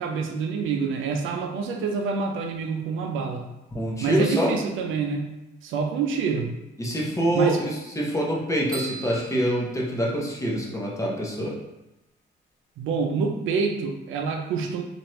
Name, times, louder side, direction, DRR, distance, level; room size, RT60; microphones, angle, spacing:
voice 1, 0.0-3.4 4.0-5.3 5.6-6.6 7.3-7.6 12.8-14.8, right 5 dB, 80° right, 3 dB, 0.5 m, -27 dB
voice 2, 3.7-4.5 6.8-11.5, right 1 dB, 15° left, -3 dB, 0.8 m, -25 dB
sound 1, 8.7-10.6, right 4 dB, 20° right, 1.3 m, -40 dB
2.9 x 2.5 x 3.1 m, 0.93 s
cardioid pair, 90°, 20 cm